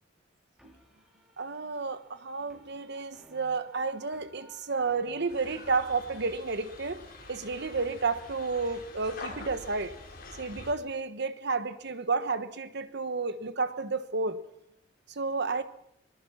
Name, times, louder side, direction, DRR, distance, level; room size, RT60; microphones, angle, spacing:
sound 1, 0.6-6.3, equal, 5° right, 3.6 m, -58 dB
voice 1, 1.4-7.0 7.3-10.0 10.3-14.4 15.1-15.6, right 4 dB, 60° right, 1.3 m, -31 dB
sound 2, 5.3-10.7, left 3 dB, 50° left, 5.0 m, -46 dB
24.0 x 19.5 x 5.8 m
head